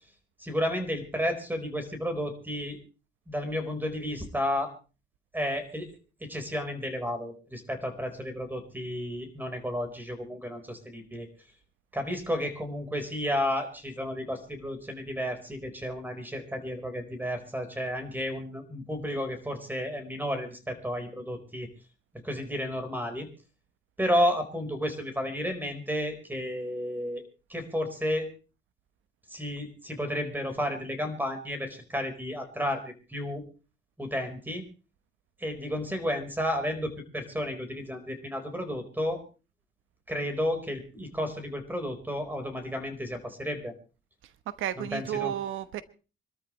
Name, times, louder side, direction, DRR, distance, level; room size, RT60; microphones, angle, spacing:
voice 1, 0.4-2.8 3.3-4.7 5.3-5.9 6.2-11.3 11.9-21.7 22.2-23.3 24.0-27.2 27.5-28.3 29.3-33.4 34.0-34.6 35.4-39.2 40.1-43.7 44.8-45.3, equal, 10° right, 4.6 m, -32 dB
voice 2, 44.2-45.8, right 11 dB, 85° right, 1.1 m, -33 dB
26.0 x 13.0 x 3.2 m
cardioid pair, 90°, 20 cm